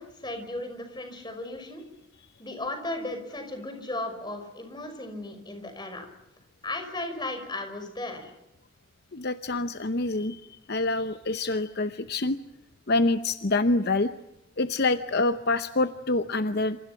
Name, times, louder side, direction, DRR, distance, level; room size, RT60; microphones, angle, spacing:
voice 1, 0.0-1.8 2.4-6.1 6.6-8.3, left 2 dB, 20° left, 6 dB, 5.6 m, -35 dB
voice 2, 9.1-10.4 10.7-12.4 12.9-14.1 14.6-16.8, left 2 dB, 50° left, 10 dB, 0.8 m, -26 dB
27.5 x 27.5 x 5.9 m, 0.88 s
head